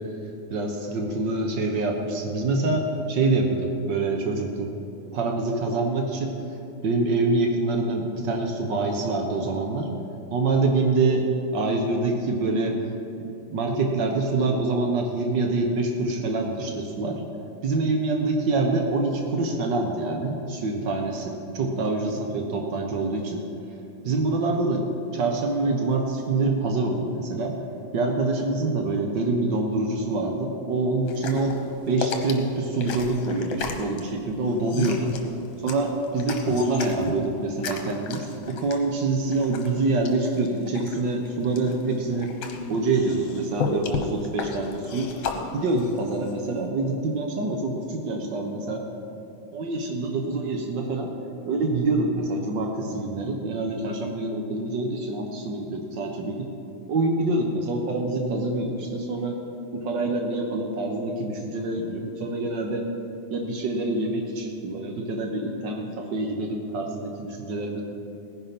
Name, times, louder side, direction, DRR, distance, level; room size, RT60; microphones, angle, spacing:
voice 1, 0.5-4.7 5.1-6.4 6.8-9.9 10.3-11.2 11.5-12.8 13.2-17.2 17.6-23.4 24.0-24.9 25.1-27.6 27.9-31.6 31.9-35.1 35.6-42.3 42.7-45.1 45.5-48.8 49.5-51.1 51.4-56.5 56.9-59.3 59.7-62.8 63.3-67.8, right 2 dB, 85° right, 2 dB, 0.9 m, -26 dB
sound 1, 31.1-46.7, left 4 dB, 60° left, 1.9 m, -34 dB
18.0 x 10.5 x 5.9 m, 2.8 s
omnidirectional pair, 3.8 m